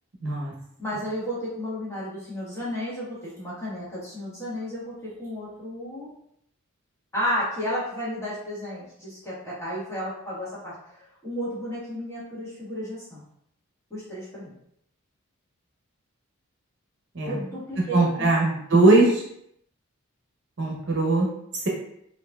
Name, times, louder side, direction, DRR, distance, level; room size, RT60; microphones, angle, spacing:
voice 1, 0.2-0.5 17.1-17.3 17.9-19.2 20.6-21.3, right 2 dB, 55° right, -2 dB, 0.9 m, -20 dB
voice 2, 0.8-6.1 7.1-13.2 13.9-14.5 17.2-18.3, equal, 15° left, -9 dB, 1.5 m, -33 dB
5.1 x 2.8 x 2.3 m, 0.73 s
head